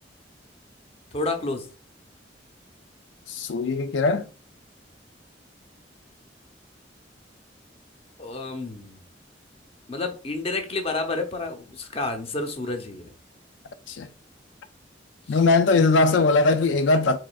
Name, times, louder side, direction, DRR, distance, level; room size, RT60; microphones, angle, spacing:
voice 1, 1.1-1.7 8.2-9.0 9.9-13.1 15.3-15.4, left 2 dB, 35° left, 0.8 m, -30 dB
voice 2, 3.3-4.3 13.9-14.1 15.3-17.2, left 3 dB, 85° left, 0.4 m, -20 dB
4.8 x 4.2 x 2.4 m
head